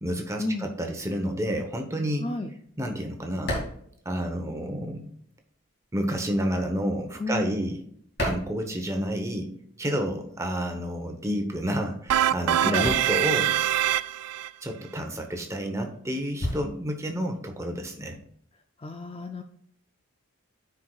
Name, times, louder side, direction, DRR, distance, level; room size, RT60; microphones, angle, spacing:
voice 1, 0.0-2.3 2.8-3.6 4.0-5.1 5.9-7.8 8.2-9.5 9.8-13.5 14.6-18.2, equal, 15° right, 3 dB, 0.9 m, -30 dB
voice 2, 2.2-2.5 7.2-7.7 12.6-12.9 18.8-19.4, left 2 dB, 25° left, 6 dB, 0.4 m, -31 dB
sound 1, 3.4-5.0 5.3-9.4 9.7-18.4, equal, 50° left, 2.3 m, -37 dB
sound 2, 12.1-14.5, right 12 dB, 85° right, 0.3 m, -24 dB
13.5 x 4.6 x 2.3 m, 0.66 s
head